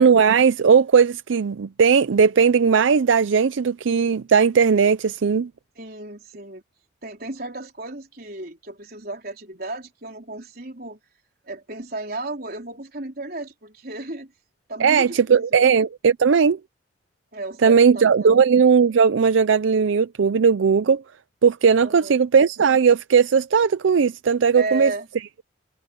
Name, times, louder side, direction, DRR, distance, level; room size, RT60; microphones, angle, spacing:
voice 1, 0.0-5.5 14.8-16.6 17.6-21.0 21.4-24.9, right 6 dB, 85° right, 0.5 m, -17 dB
voice 2, 5.8-6.6 7.0-11.0 11.4-14.3 14.7-15.7 17.3-18.4 21.8-22.2 24.5-25.1, right 2 dB, 50° right, 4.1 m, -34 dB
head